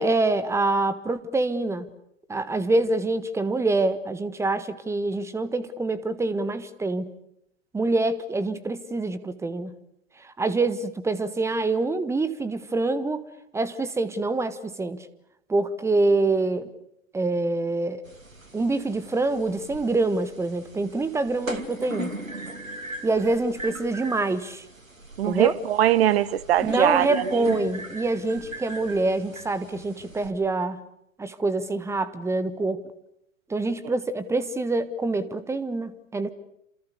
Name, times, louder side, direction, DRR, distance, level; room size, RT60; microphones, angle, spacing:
voice 1, 0.0-1.9 2.3-7.1 7.7-9.8 10.2-13.2 13.5-15.1 15.5-16.7 17.1-18.0 18.5-22.1 23.0-24.6 25.2-25.5 26.6-30.8 31.2-32.8 33.5-36.3, right 2 dB, 5° right, 1.5 m, -25 dB
sound 1, 18.0-30.3, right 1 dB, 85° right, 2.6 m, -39 dB
voice 2, 25.2-27.6, right 12 dB, 50° right, 1.3 m, -22 dB
28.5 x 27.5 x 6.7 m
figure-of-eight pair, 100°, 39 cm